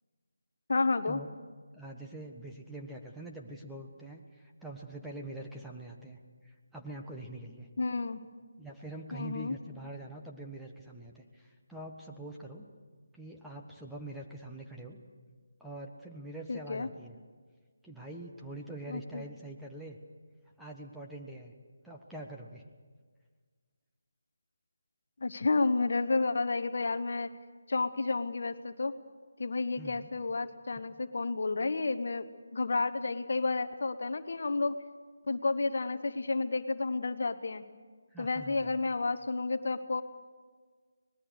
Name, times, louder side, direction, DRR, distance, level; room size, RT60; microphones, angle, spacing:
voice 1, 0.7-1.2 7.8-8.2 9.1-9.5 16.5-16.9 18.9-19.3 25.2-27.3 27.7-28.9 29.4-34.8 35.3-37.6 38.2-40.0, left 3 dB, 55° left, 11 dB, 1.1 m, -31 dB
voice 2, 1.7-6.2 6.4-7.7 8.6-12.7 13.1-15.0 15.6-17.2 17.8-20.0 20.6-21.5 21.8-22.6 29.8-30.1 30.9-31.0 38.1-38.8, right 2 dB, ahead, -2 dB, 1.4 m, -44 dB
25.0 x 20.0 x 6.6 m, 1.5 s
figure-of-eight pair, 155°, 0 cm